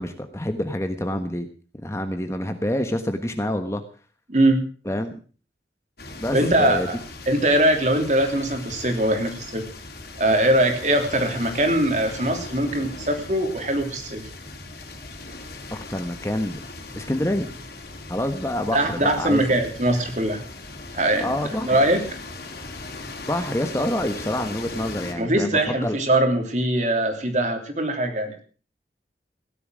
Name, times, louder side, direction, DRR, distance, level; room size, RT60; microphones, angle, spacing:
voice 1, 0.0-1.5 1.8-3.8 4.8-5.1 6.2-6.9 15.9-16.6 16.9-17.5 18.1-19.4 21.2-21.8 23.3-26.0, left 1 dB, 15° left, 7 dB, 1.3 m, -27 dB
voice 2, 4.3-4.6 6.3-7.0 7.3-9.6 10.2-14.3 18.7-20.4 20.9-21.3 21.6-22.0 25.1-28.4, right 1 dB, 40° right, 5 dB, 3.2 m, -21 dB
sound 1, 6.0-25.1, left 2 dB, 60° left, 3.8 m, -38 dB
17.0 x 11.0 x 6.3 m, 0.40 s
head